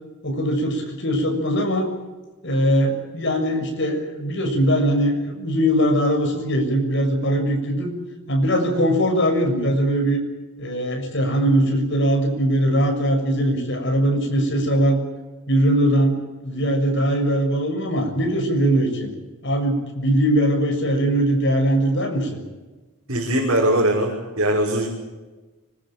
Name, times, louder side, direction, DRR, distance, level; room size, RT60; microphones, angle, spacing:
voice 1, 0.2-1.9 2.4-7.9 8.3-10.2 10.6-15.0 15.5-19.1 19.4-22.4, equal, 55° left, 3 dB, 6.8 m, -21 dB
voice 2, 23.1-24.9, right 1 dB, 60° right, -3 dB, 6.0 m, -20 dB
25.0 x 21.5 x 8.9 m, 1.2 s
head